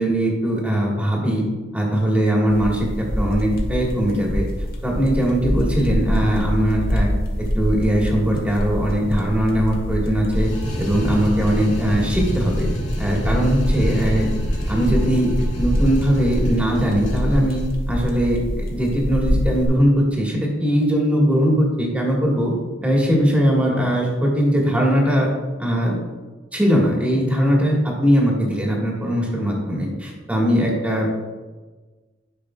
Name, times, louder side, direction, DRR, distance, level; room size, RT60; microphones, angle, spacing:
voice 1, 0.0-1.4 1.7-4.5 4.8-7.1 7.4-10.5 10.8-12.7 13.0-14.3 14.7-17.6 17.9-22.5 22.8-25.3 25.6-26.0 26.5-31.1, equal, 10° right, -2 dB, 1.5 m, -20 dB
sound 1, 2.5-19.7, equal, 55° left, 1.3 m, -25 dB
sound 2, 10.4-17.7, equal, 90° left, 1.7 m, -31 dB
11.0 x 5.3 x 2.3 m, 1.3 s
head